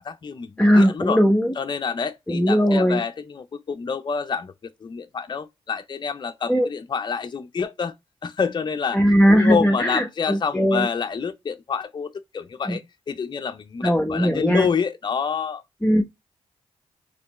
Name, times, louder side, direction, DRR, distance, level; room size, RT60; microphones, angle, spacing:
voice 1, 0.0-1.2 1.6-7.9 8.2-9.0 9.3-15.6, left 6 dB, 40° left, 0.5 m, -28 dB
voice 2, 0.6-1.5 2.3-3.0 6.5-6.7 8.9-10.9 12.7-12.8 13.8-14.7 15.8-16.0, equal, 10° left, 0.9 m, -19 dB
4.3 x 3.0 x 3.0 m
cardioid pair, 55°, 11 cm